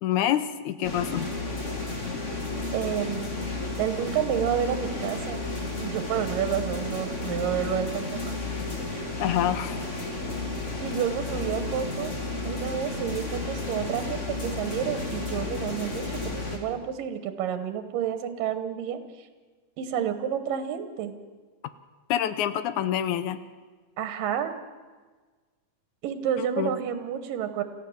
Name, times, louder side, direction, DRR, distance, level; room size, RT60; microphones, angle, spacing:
voice 1, 0.0-1.3 1.8-1.9 9.2-9.8 22.1-23.4 26.4-26.7, left 11 dB, 75° left, 12 dB, 2.1 m, -27 dB
sound 1, 0.8-16.6, left 2 dB, 25° left, 2.4 m, -32 dB
voice 2, 2.7-3.3 3.8-5.4 5.8-8.4 10.8-12.1 12.5-19.3 19.8-21.1 24.0-24.6 26.0-27.6, right 9 dB, 90° right, 10 dB, 2.9 m, -30 dB
27.5 x 15.0 x 7.2 m, 1.4 s
omnidirectional pair, 3.8 m